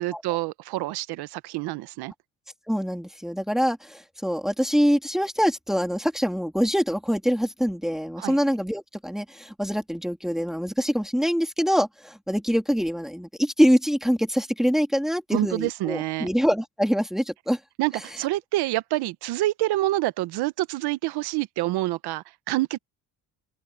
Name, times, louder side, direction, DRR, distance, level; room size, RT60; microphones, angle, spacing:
voice 1, 0.0-2.1 8.2-8.4 15.3-16.3 17.8-22.8, right 17 dB, 85° right, 1.0 m, -27 dB
voice 2, 2.7-17.6, equal, ahead, 3.4 m, -24 dB
cardioid pair, 105°, 38 cm